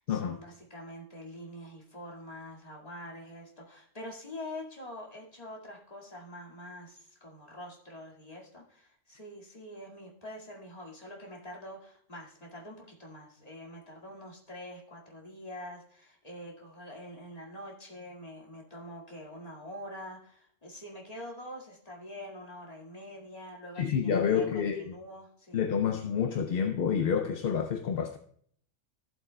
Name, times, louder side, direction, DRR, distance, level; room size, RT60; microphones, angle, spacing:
voice 1, 0.0-25.6, left 1 dB, 30° left, 2.1 m, -45 dB
voice 2, 23.8-24.9 25.5-28.2, left 7 dB, 60° left, 0.7 m, -28 dB
14.5 x 8.0 x 2.2 m
omnidirectional pair, 1.2 m